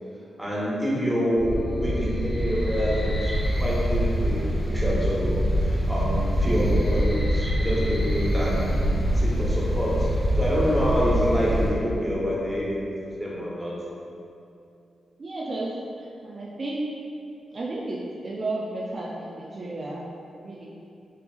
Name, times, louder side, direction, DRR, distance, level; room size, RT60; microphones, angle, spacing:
voice 1, 0.4-3.3 3.6-5.3 5.6-8.7 9.1-10.1 10.3-13.7, equal, 10° right, -6 dB, 0.8 m, -27 dB
sound 1, 1.4-11.7, equal, 45° left, 0.8 m, -25 dB
voice 2, 15.2-15.7 16.0-16.9 17.5-20.0 20.4-20.7, right 2 dB, 50° right, -4 dB, 0.3 m, -32 dB
2.7 x 2.5 x 2.3 m, 2.6 s
supercardioid pair, 45°, 0 cm